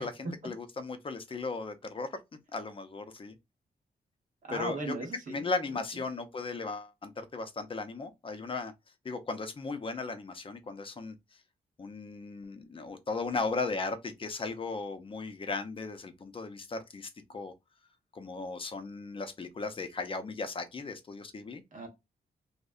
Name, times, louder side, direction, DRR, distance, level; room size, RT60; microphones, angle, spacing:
voice 1, 0.0-2.1 2.5-3.4 4.5-4.9 5.3-8.7 9.0-11.1 11.8-17.5 18.1-21.6, left 3 dB, 35° left, 0.5 m, -36 dB
voice 2, 4.4-5.4 5.7-6.0 21.7-21.9, right 2 dB, 50° right, 1.0 m, -38 dB
2.6 x 2.0 x 2.3 m
wide cardioid pair, 105°, 16 cm